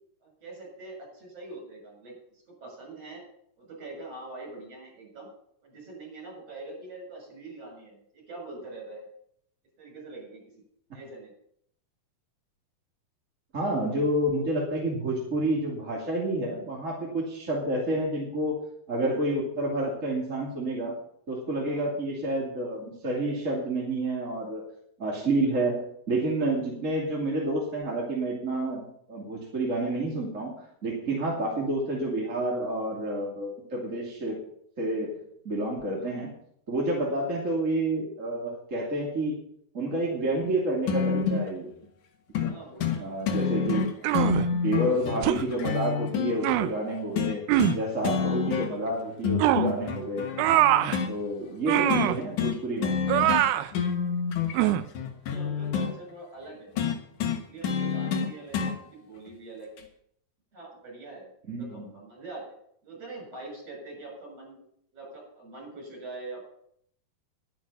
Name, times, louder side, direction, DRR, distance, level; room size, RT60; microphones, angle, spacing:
voice 1, 0.2-3.2 3.6-5.3 5.6-9.1 9.8-10.4 10.9-11.3 21.5-21.9 25.2-25.5 35.9-36.1 37.1-37.2 42.4-43.2 43.6-43.8 47.1-47.2 51.2-51.6 54.4-56.7 57.5-59.9 60.5-62.4 62.8-64.6 64.9-66.4, right 2 dB, 40° right, -1 dB, 7.7 m, -44 dB
voice 2, 13.5-18.6 18.9-20.9 21.3-24.7 25.0-34.4 34.8-36.3 36.7-39.4 39.7-41.7 42.4-42.5 43.0-43.8 44.5-47.4 47.7-50.3 51.1-52.9 61.5-61.9, right 1 dB, 25° right, -3 dB, 2.3 m, -29 dB
sound 1, 40.9-41.5 42.3-42.5 42.8-43.0 43.3-46.3 47.2-47.8 48.0-48.9 49.2-51.1 51.9-52.1 52.4-52.6 52.8-53.5 53.7-55.9 56.8-58.7 59.8-59.9, left 6 dB, 60° left, 2.6 m, -28 dB
sound 2, 44.0-44.5 45.2-45.4 46.4-46.7 47.5-47.8 49.4-49.7 50.4-51.0 51.7-52.2 53.1-53.7 54.5-54.8, right 13 dB, 80° right, 2.5 m, -23 dB
11.5 x 11.0 x 5.5 m, 0.69 s
omnidirectional pair, 4.5 m